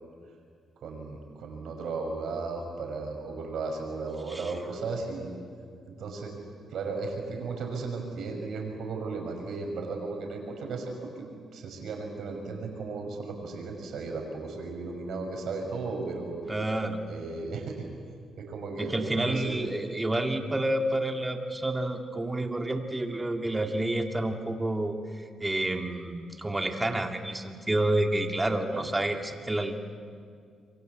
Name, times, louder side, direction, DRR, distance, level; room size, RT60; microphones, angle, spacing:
voice 1, 0.8-5.3 5.9-6.3 6.7-16.4 17.1-17.9 18.4-19.6 28.7-28.9, right 3 dB, 70° right, 3 dB, 5.9 m, -35 dB
voice 2, 16.4-17.0 18.8-29.8, right 1 dB, 15° right, 5 dB, 2.3 m, -29 dB
27.0 x 23.5 x 8.1 m, 2.2 s
cardioid pair, 90°, 0 cm